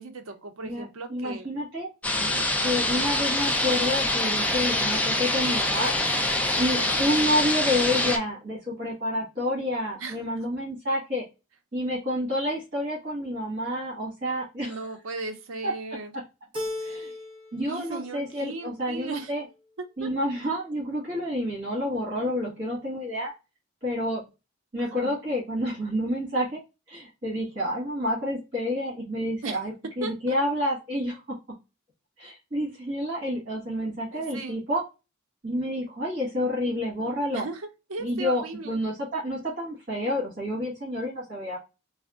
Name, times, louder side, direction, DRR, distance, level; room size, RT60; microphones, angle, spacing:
voice 1, 0.0-1.5 2.2-2.4 6.6-6.9 10.0-10.2 14.6-16.1 17.7-19.3 19.8-20.1 24.8-25.2 29.4-29.6 30.0-30.3 34.1-34.6 37.3-38.8, right 3 dB, 70° right, 0.6 m, -37 dB
voice 2, 0.6-1.9 2.6-5.9 6.6-11.2 11.7-14.8 15.6-15.7 16.8-17.1 17.5-19.4 20.0-23.3 23.8-24.2 24.7-26.6 26.9-31.4 32.2-34.8 35.4-37.4 38.0-41.6, left 1 dB, 45° right, 1.5 m, -29 dB
sound 1, 2.0-8.2, left 1 dB, 5° left, 0.3 m, -25 dB
Keyboard (musical), 16.5-17.7 18.0-18.7, left 1 dB, 25° right, 0.9 m, -36 dB
3.4 x 2.0 x 2.3 m
head